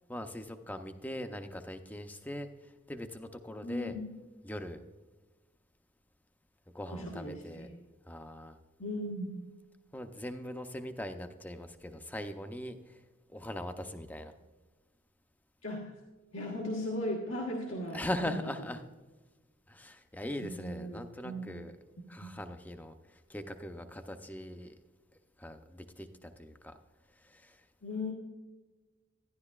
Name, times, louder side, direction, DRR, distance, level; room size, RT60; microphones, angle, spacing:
voice 1, 0.1-4.0 4.4-4.8 6.7-7.7 8.1-8.6 9.9-13.0 13.3-14.3 17.9-18.8 19.7-21.7 22.1-24.8 25.4-26.8 27.1-27.6, left 1 dB, 10° left, 8 dB, 0.5 m, -41 dB
voice 2, 3.6-4.0 6.9-7.7 8.8-9.4 15.6-15.9 16.3-18.3 20.4-21.5 22.2-22.3 27.8-28.1, left 1 dB, 90° left, -2 dB, 1.4 m, -37 dB
12.0 x 10.5 x 2.4 m, 1.2 s
head